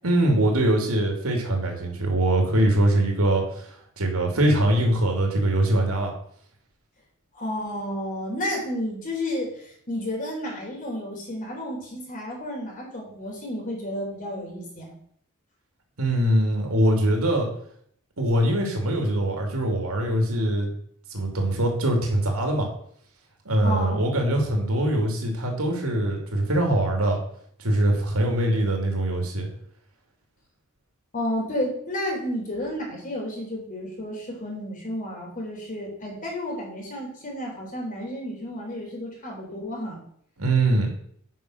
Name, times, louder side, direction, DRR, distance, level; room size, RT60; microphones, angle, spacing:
voice 1, 0.0-6.1 16.0-17.5 18.2-20.7 21.1-22.7 23.4-27.2 27.6-29.5 40.4-40.9, right 1 dB, 90° right, 2 dB, 2.6 m, -22 dB
voice 2, 7.3-14.9 23.6-24.0 31.1-40.0, left 1 dB, 40° left, -1 dB, 3.5 m, -31 dB
9.2 x 5.4 x 6.1 m, 0.64 s
head